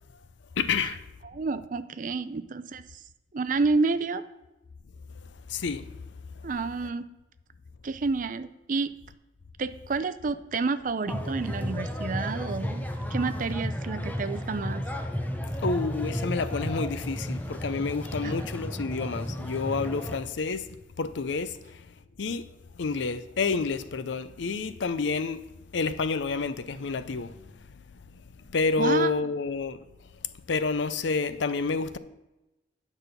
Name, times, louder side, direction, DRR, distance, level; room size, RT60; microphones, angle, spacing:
voice 1, 0.6-1.0 5.5-5.9 15.6-20.7 21.0-21.9 22.2-22.5 22.7-25.4 25.7-27.4 28.5-29.8 30.5-32.0, left 4 dB, 75° left, 0.5 m, -29 dB
voice 2, 1.3-2.9 3.3-4.2 6.4-7.1 7.8-8.9 9.6-14.8 18.2-18.5 28.8-29.2, right 4 dB, 45° right, 0.5 m, -29 dB
sound 1, 11.1-20.2, equal, 10° left, 0.7 m, -33 dB
9.0 x 6.2 x 5.1 m
head